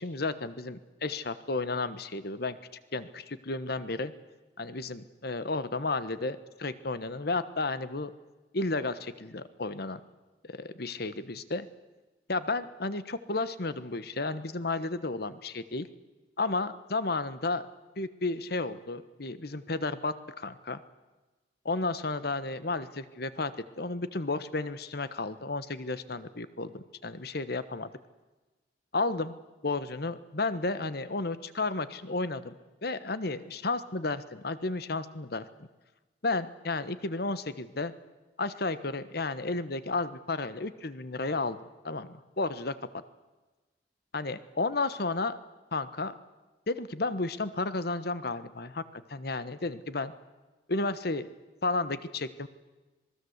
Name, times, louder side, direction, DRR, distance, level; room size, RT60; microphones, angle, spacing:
voice 1, 0.0-2.6 2.9-4.1 4.6-8.1 8.5-10.0 10.4-11.7 12.3-15.9 16.4-17.6 18.0-20.8 21.6-23.5 23.8-27.9 28.9-29.3 29.6-32.5 32.8-35.4 36.2-37.9 38.4-41.6 41.8-43.0 44.1-45.4 45.7-46.2 46.7-50.1 50.7-51.3 51.6-52.5, left 3 dB, 60° left, 13 dB, 1.3 m, -32 dB
26.5 x 20.5 x 8.1 m, 1.2 s
head